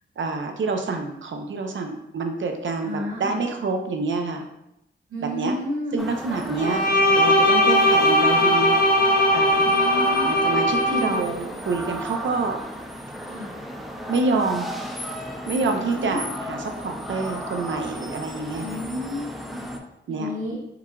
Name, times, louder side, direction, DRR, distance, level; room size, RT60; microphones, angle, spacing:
voice 1, 0.2-4.4 5.3-5.5 5.9-6.8 7.1-9.7 10.2-12.6 14.1-14.7 15.5-18.8 20.1-20.6, right 3 dB, 65° right, 4 dB, 0.5 m, -27 dB
voice 2, 2.8-3.4 5.1-6.0 6.8-7.3 9.6-10.4 10.9-11.2 11.6-11.7 13.3-13.5 15.8-16.3 18.5-19.6 20.1-20.6, left 1 dB, 90° right, -5 dB, 0.9 m, -32 dB
sound 1, 6.0-19.8, equal, ahead, 0.5 m, -35 dB
Bowed string instrument, 6.6-11.2, left 1 dB, 45° left, 0.6 m, -19 dB
4.7 x 2.4 x 2.3 m, 0.83 s
cardioid pair, 55°, 21 cm